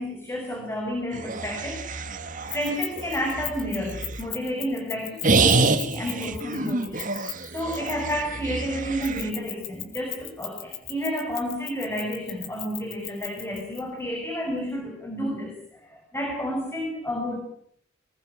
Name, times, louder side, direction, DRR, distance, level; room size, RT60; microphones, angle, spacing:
voice 1, 0.0-1.8 2.5-7.1 7.5-17.4, equal, 10° left, 1 dB, 5.6 m, -31 dB
sound 1, 1.1-4.3 5.2-9.3, right 3 dB, 40° right, 1.9 m, -27 dB
Keys jangling, 2.5-8.2 9.0-13.8, left 12 dB, 85° left, 4.4 m, -37 dB
23.5 x 20.5 x 9.9 m, 0.66 s
head